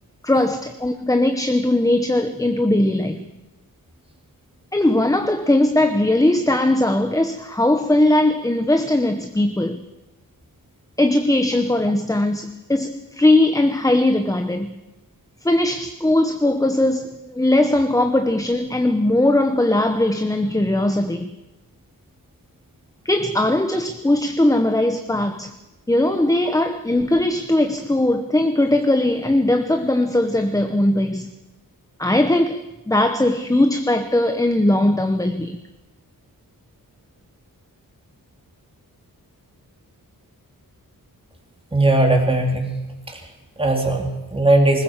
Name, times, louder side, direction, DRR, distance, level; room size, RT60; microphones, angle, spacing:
voice 1, 0.2-3.2 4.7-9.8 11.0-14.7 15.4-21.3 23.0-25.5 25.9-31.3 32.0-35.6, left 1 dB, 10° left, 7 dB, 1.0 m, -19 dB
voice 2, 41.7-42.8 43.1-44.8, right 2 dB, 15° right, 2 dB, 3.3 m, -19 dB
21.0 x 20.0 x 7.2 m, 1.0 s
wide cardioid pair, 165°, 35 cm